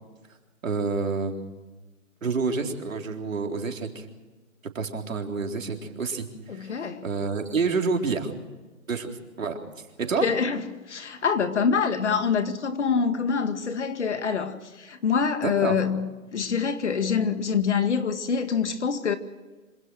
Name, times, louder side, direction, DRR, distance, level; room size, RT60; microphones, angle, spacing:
voice 1, 0.6-1.5 2.2-4.1 4.7-6.7 7.0-8.3 8.9-9.1 9.4-9.6 10.0-10.3 15.4-15.8, right 4 dB, 70° right, 3.9 m, -28 dB
voice 2, 6.5-7.1 10.2-19.2, left 6 dB, 55° left, 2.1 m, -25 dB
26.0 x 17.0 x 6.3 m
hypercardioid pair, 170°, 41 cm